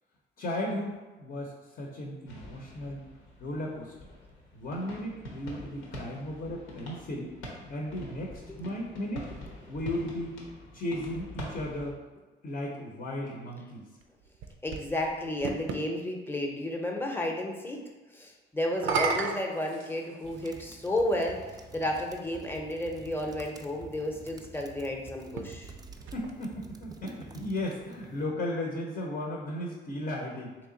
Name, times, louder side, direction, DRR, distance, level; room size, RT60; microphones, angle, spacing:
voice 1, 0.4-3.0 3.4-3.9 4.5-7.3 7.7-9.3 9.7-10.4 10.7-12.0 12.4-13.8 26.1-30.6, left 1 dB, 50° left, -1 dB, 0.7 m, -35 dB
sound 1, 2.3-11.9, equal, 90° left, 1.0 m, -45 dB
sound 2, 14.0-15.9 18.7-20.5 21.4-21.5 25.2-26.8, right 5 dB, 85° right, 0.4 m, -34 dB
voice 2, 14.6-25.7, left 1 dB, 10° left, 1 dB, 0.7 m, -32 dB
sound 3, 20.2-28.2, right 3 dB, 20° right, 0.4 m, -50 dB
3.3 x 2.9 x 3.8 m, 1.2 s
cardioid pair, 90°, 20 cm